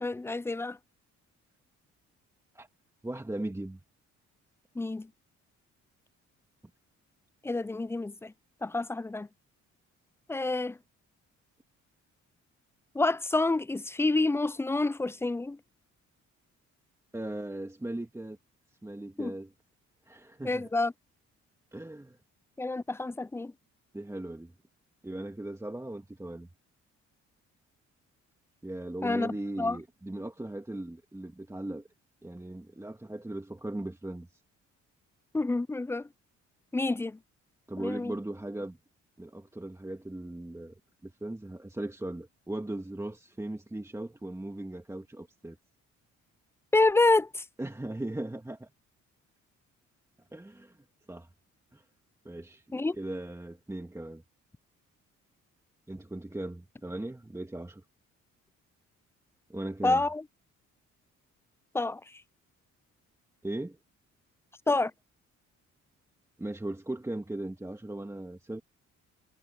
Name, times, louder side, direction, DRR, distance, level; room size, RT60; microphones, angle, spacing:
voice 1, 0.0-0.8 4.8-5.1 7.4-8.3 8.6-9.3 10.3-10.8 12.9-15.6 19.2-19.3 20.4-20.9 22.6-23.5 29.0-29.8 35.3-36.0 36.7-37.2 37.8-38.1 46.7-47.4 52.7-53.0 59.8-60.2 61.7-62.0 64.7-64.9, left 2 dB, 10° left, 0.3 m, -28 dB
voice 2, 3.0-3.8 17.1-18.4 18.8-19.5 20.1-20.7 21.7-22.2 23.9-24.5 25.0-26.5 28.6-31.8 32.2-34.4 37.7-38.8 39.2-40.7 41.0-45.6 47.6-48.7 50.3-50.8 51.1-51.3 51.7-51.8 52.2-52.6 53.0-54.2 55.9-57.8 59.5-60.0 63.4-63.8 66.4-68.6, right 1 dB, 10° right, 2.1 m, -38 dB
cardioid pair, 90°, 30 cm